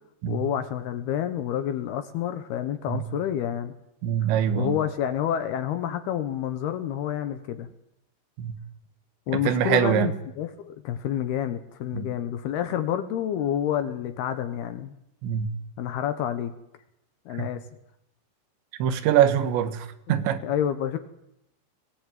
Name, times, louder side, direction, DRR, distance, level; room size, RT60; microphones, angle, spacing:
voice 1, 0.3-3.7 4.6-7.7 9.3-14.9 15.8-16.5 17.3-17.6 20.4-21.0, left 10 dB, 70° left, 10 dB, 2.5 m, -28 dB
voice 2, 4.0-4.8 8.4-8.6 9.3-10.1 11.9-12.1 15.2-15.5 17.4-17.5 18.8-20.4, right 9 dB, 70° right, 10 dB, 3.5 m, -24 dB
22.0 x 17.0 x 9.2 m, 0.83 s
omnidirectional pair, 5.7 m